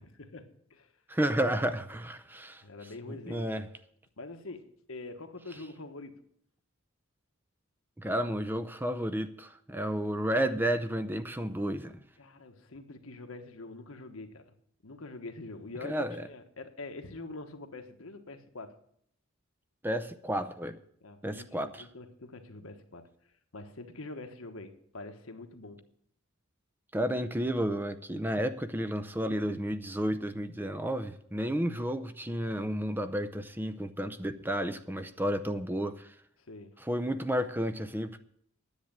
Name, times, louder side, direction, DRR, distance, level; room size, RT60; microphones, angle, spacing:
voice 1, 0.0-0.9 2.6-3.5 4.2-6.2 12.2-14.5 14.8-18.8 21.0-23.1 23.5-25.8 36.4-36.8, left 2 dB, 80° left, 1.4 m, -45 dB
voice 2, 1.1-2.6 3.3-3.6 8.0-11.9 15.8-16.2 19.8-20.8 21.2-21.8 26.9-36.1 36.9-38.2, equal, 10° right, 0.6 m, -31 dB
10.5 x 8.0 x 8.9 m
head